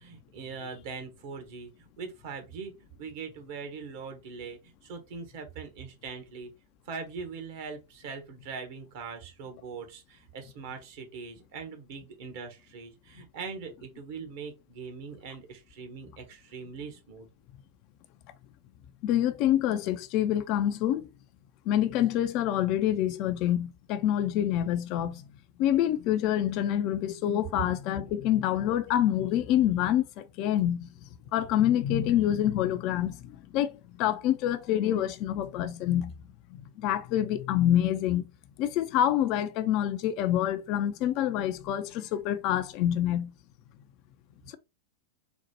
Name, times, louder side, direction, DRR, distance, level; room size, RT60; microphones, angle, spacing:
voice 1, 0.0-6.5 6.9-17.3, right 5 dB, 50° right, 1.0 m, -41 dB
voice 2, 19.0-21.1 21.7-25.2 25.6-30.9 31.3-36.1 36.5-38.2 38.6-43.3 44.5-44.6, left 11 dB, 40° left, 0.4 m, -27 dB
4.1 x 2.1 x 2.9 m
figure-of-eight pair, 90°, 0 cm